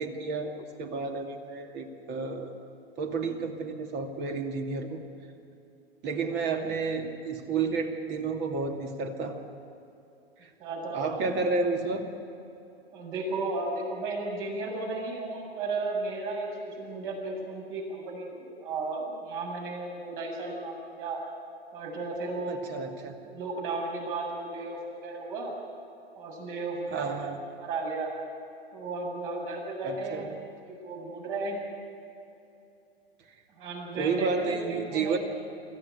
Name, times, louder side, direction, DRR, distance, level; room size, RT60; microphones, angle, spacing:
voice 1, 0.0-2.5 3.0-5.0 6.0-9.4 10.4-10.5 10.9-12.1 22.5-23.2 26.9-27.4 29.8-30.3 33.9-35.2, right 4 dB, 35° right, 4 dB, 2.5 m, -31 dB
voice 2, 10.6-11.0 11.3-11.7 12.9-21.2 21.7-22.6 23.3-25.5 26.2-28.1 28.7-31.6 33.6-35.2, right 3 dB, 55° right, -1 dB, 7.5 m, -34 dB
25.0 x 15.0 x 9.4 m, 2.8 s
hypercardioid pair, 110°, 31 cm